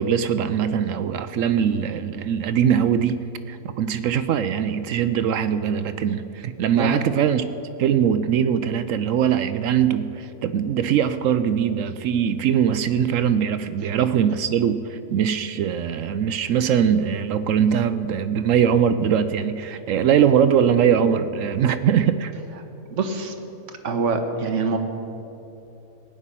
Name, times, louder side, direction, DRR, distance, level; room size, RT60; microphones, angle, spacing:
voice 1, 0.0-7.4 7.8-22.3, right 8 dB, 70° right, 12 dB, 0.8 m, -21 dB
voice 2, 22.9-23.3 23.8-24.8, right 4 dB, 55° right, 5 dB, 1.4 m, -24 dB
17.0 x 5.8 x 9.8 m, 2.9 s
omnidirectional pair, 1.6 m